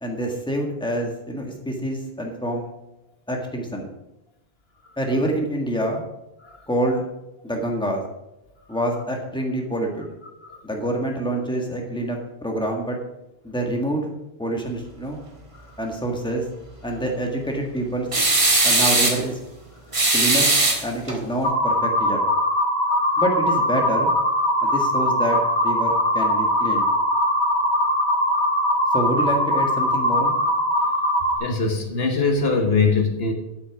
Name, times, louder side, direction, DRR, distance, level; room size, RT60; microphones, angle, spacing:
voice 1, 0.0-2.7 3.3-3.9 5.0-6.0 6.7-7.0 7.4-8.0 8.7-10.1 10.6-13.0 13.4-14.1 14.4-15.2 15.8-16.4 16.8-18.1 18.6-19.4 20.1-20.5 20.8-22.2 23.2-24.1 24.6-25.4 25.6-26.9 28.9-30.4, right 1 dB, 5° left, 1 dB, 1.7 m, -26 dB
sound 1, 18.1-19.2 19.9-21.2, right 2 dB, 30° right, 1.4 m, -19 dB
sound 2, 21.4-31.4, left 1 dB, 20° left, 2.5 m, -21 dB
voice 2, 31.4-33.3, left 4 dB, 75° left, 4 dB, 1.6 m, -22 dB
8.7 x 8.4 x 6.0 m, 0.92 s
omnidirectional pair, 1.0 m